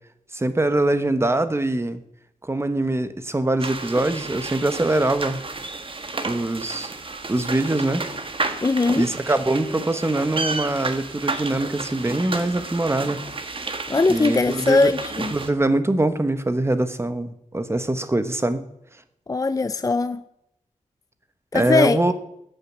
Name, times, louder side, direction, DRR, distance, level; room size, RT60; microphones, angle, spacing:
voice 1, 0.3-2.0 2.4-5.4 6.2-6.9 7.3-8.0 9.0-13.2 14.1-14.9 15.3-18.6 21.5-22.1, right 2 dB, 20° right, 1.2 m, -23 dB
sound 1, 3.6-15.5, right 3 dB, 40° right, 1.6 m, -32 dB
voice 2, 8.6-9.1 13.9-15.3 19.3-20.2 21.5-22.1, left 3 dB, 25° left, 0.5 m, -20 dB
14.5 x 9.1 x 8.6 m
wide cardioid pair, 135°, 14 cm